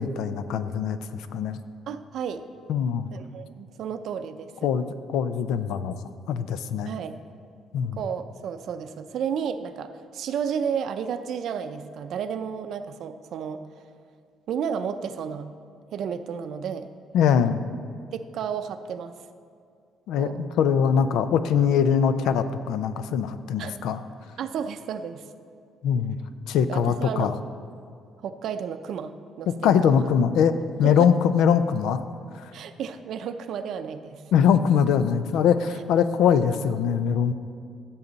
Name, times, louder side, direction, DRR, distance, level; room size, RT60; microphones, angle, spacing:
voice 1, 0.0-1.6 2.7-3.1 4.6-6.0 6.3-6.9 7.7-8.0 17.1-17.6 20.1-24.0 25.8-26.2 26.5-27.3 29.6-32.0 34.3-37.3, left 7 dB, 85° left, 12 dB, 0.5 m, -22 dB
voice 2, 1.9-2.4 3.1-4.7 6.8-7.1 8.0-13.8 14.5-15.5 15.9-16.9 18.1-19.1 20.2-20.4 23.6-23.7 24.4-25.2 26.7-27.3 28.2-29.5 29.8-29.9 30.8-31.1 32.5-34.2 36.2-36.3, right 7 dB, 60° right, 10 dB, 0.5 m, -32 dB
16.0 x 7.2 x 4.0 m, 2.3 s
cardioid pair, 140°, 0 cm